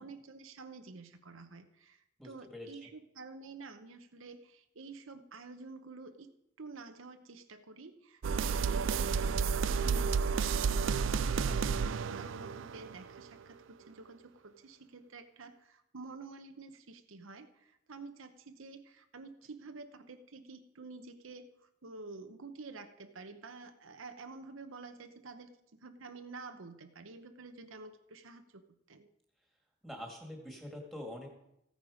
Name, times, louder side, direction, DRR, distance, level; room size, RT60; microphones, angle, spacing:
voice 1, 0.0-6.3 6.6-21.5 21.8-28.6 28.9-29.1, right 3 dB, 85° right, 7 dB, 1.0 m, -50 dB
voice 2, 2.2-2.9 11.1-11.6 29.8-31.3, left 1 dB, ahead, 1 dB, 2.1 m, -45 dB
sound 1, 8.2-13.2, right 5 dB, 70° right, 0.4 m, -31 dB
15.0 x 9.1 x 5.0 m, 0.82 s
head